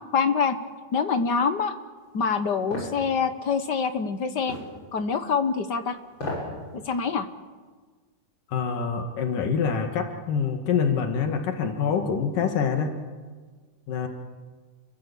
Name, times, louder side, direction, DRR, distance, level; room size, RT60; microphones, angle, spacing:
voice 1, 0.1-0.6 0.9-1.7 2.1-4.6 4.9-6.0 6.7-7.3, left 5 dB, 65° left, 8 dB, 1.0 m, -25 dB
sound 1, 2.7-3.0 4.5-4.7 6.1-6.5 6.9-7.0, left 1 dB, 35° left, 8.9 m, -32 dB
voice 2, 8.5-13.0 13.9-14.1, left 6 dB, 80° left, 5 dB, 3.5 m, -26 dB
30.0 x 22.0 x 8.5 m, 1.4 s
omnidirectional pair, 3.7 m